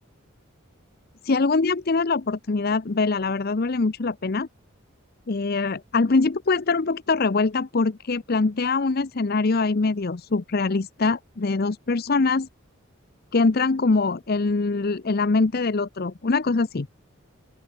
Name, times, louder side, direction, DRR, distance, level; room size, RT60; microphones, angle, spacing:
voice 1, 1.2-4.5 5.3-12.5 13.3-16.9, left 3 dB, 45° left, 0.6 m, -23 dB
open air
head